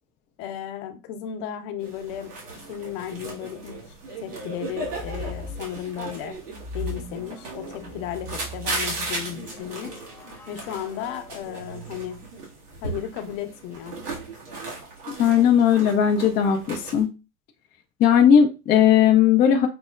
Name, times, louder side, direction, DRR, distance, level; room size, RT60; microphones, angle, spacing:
voice 1, 0.4-2.3 2.7-3.8 4.2-6.3 6.7-10.0 10.5-12.2 12.8-14.0, left 10 dB, 55° left, 0.8 m, -34 dB
sound 1, 1.8-17.0, right 3 dB, 90° right, 1.5 m, -36 dB
sound 2, 4.7-5.7 6.5-12.5, left 1 dB, 5° left, 0.7 m, -40 dB
voice 2, 15.2-17.1 18.0-19.7, left 8 dB, 25° left, 0.3 m, -17 dB
5.5 x 2.0 x 2.3 m
hypercardioid pair, 100°, 45 cm